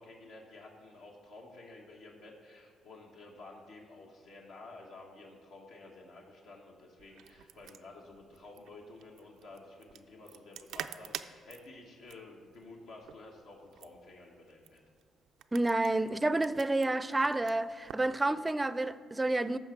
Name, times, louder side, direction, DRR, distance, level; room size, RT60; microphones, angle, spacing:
voice 1, 0.0-14.8, left 2 dB, 85° left, 1.5 m, -52 dB
sound 1, 7.0-18.1, right 10 dB, 85° right, 0.4 m, -49 dB
voice 2, 15.5-19.6, right 2 dB, 15° right, 0.4 m, -29 dB
14.0 x 5.4 x 4.5 m
cardioid pair, 90°, 0 cm